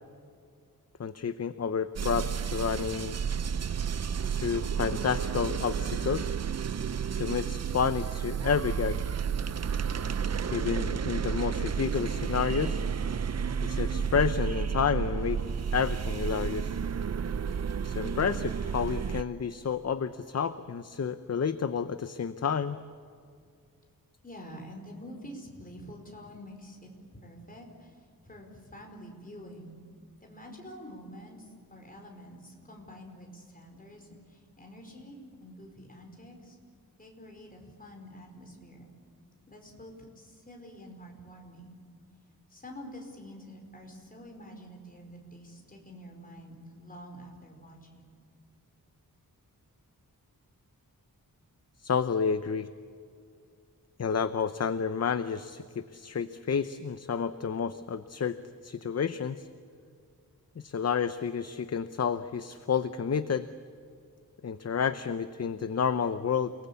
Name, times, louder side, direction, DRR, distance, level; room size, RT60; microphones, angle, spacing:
voice 1, 1.0-3.2 4.3-6.3 7.1-9.0 10.5-12.8 13.6-15.4 15.7-16.8 17.8-22.8 51.8-52.7 54.0-58.4 58.6-59.5 60.6-63.5 64.4-66.7, left 6 dB, 45° left, 11 dB, 0.7 m, -30 dB
sound 1, 2.0-19.2, right 7 dB, 45° right, 0.6 m, -31 dB
voice 2, 24.2-26.9 27.2-29.8 30.2-36.6 37.0-38.9 39.5-41.8 42.5-48.1, equal, 25° left, 1 dB, 4.9 m, -47 dB
29.0 x 19.5 x 8.4 m, 2.3 s
wide cardioid pair, 150°, 36 cm